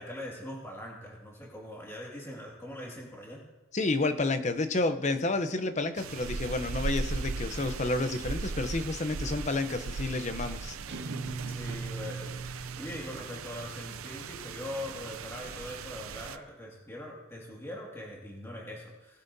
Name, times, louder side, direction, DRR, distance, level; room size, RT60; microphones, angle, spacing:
voice 1, 0.0-3.4 11.5-19.2, left 1 dB, 10° left, -3 dB, 2.1 m, -42 dB
voice 2, 3.7-10.8, left 2 dB, 35° left, 9 dB, 0.7 m, -30 dB
sound 1, 6.0-16.4, right 4 dB, 80° right, 0.5 m, -38 dB
sound 2, 10.9-13.4, right 3 dB, 55° right, 1.1 m, -39 dB
19.5 x 9.6 x 2.7 m, 1.1 s
head